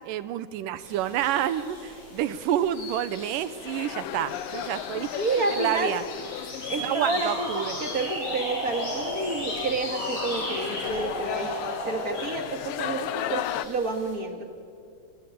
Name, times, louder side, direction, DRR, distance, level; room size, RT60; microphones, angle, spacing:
voice 1, 0.0-5.1 5.5-6.0 6.8-7.7, right 11 dB, 75° right, 14 dB, 2.4 m, -29 dB
sound 1, 0.8-14.2, left 1 dB, 60° left, 7.5 m, -39 dB
sound 2, 3.4-13.7, left 12 dB, 80° left, 2.4 m, -36 dB
voice 2, 5.2-5.9 6.7-11.5 11.8-14.5, right 3 dB, 40° right, 5 dB, 1.4 m, -29 dB
sound 3, 7.0-12.4, right 2 dB, 20° right, 1.0 m, -36 dB
29.5 x 21.5 x 8.6 m, 2.3 s
omnidirectional pair, 4.2 m